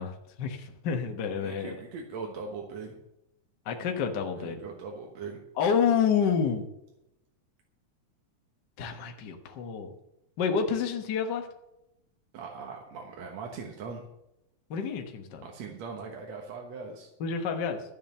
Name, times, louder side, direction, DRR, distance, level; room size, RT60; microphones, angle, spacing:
voice 1, 0.0-1.8 3.6-4.6 5.6-6.7 8.8-9.9 10.4-11.5 14.7-15.4 17.2-17.8, left 6 dB, 50° left, 4 dB, 1.3 m, -29 dB
voice 2, 1.3-3.0 4.4-5.4 12.3-14.1 15.4-17.1, right 5 dB, 65° right, 1 dB, 2.4 m, -40 dB
13.0 x 7.2 x 6.8 m, 0.86 s
omnidirectional pair, 3.4 m